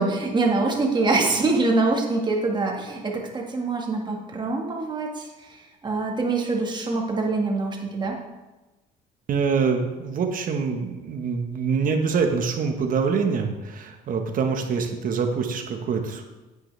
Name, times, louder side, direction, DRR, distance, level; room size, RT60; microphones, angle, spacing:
voice 1, 0.0-8.2, right 3 dB, 25° right, 0 dB, 1.9 m, -24 dB
voice 2, 9.3-16.2, right 5 dB, 55° right, 4 dB, 1.4 m, -25 dB
9.4 x 9.2 x 3.4 m, 1.1 s
cardioid pair, 110°, 17 cm